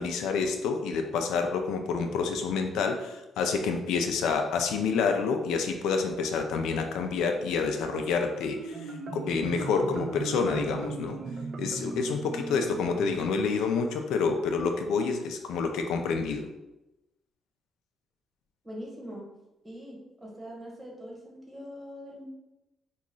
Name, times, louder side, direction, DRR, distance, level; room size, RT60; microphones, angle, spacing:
voice 1, 0.0-11.2 11.6-16.5, left 5 dB, 85° left, 5 dB, 0.4 m, -28 dB
Marimba xylophone, 8.4-13.9, right 4 dB, 50° right, 0.4 m, -38 dB
voice 2, 18.6-19.2 19.6-22.2, equal, 20° right, -3 dB, 1.2 m, -42 dB
2.9 x 2.3 x 3.8 m, 0.96 s
cardioid pair, 90°, 0 cm